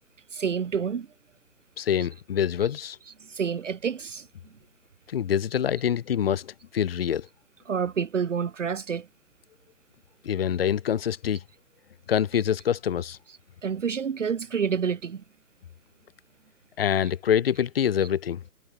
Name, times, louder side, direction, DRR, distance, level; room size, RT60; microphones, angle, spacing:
voice 1, 0.3-1.1 3.2-4.3 7.7-9.1 13.6-15.2, right 6 dB, 50° right, 2.1 m, -28 dB
voice 2, 1.8-3.0 5.1-7.3 10.2-11.4 12.1-13.2 16.8-18.4, left 9 dB, 40° left, 2.3 m, -25 dB
figure-of-eight pair, 135°, 47 cm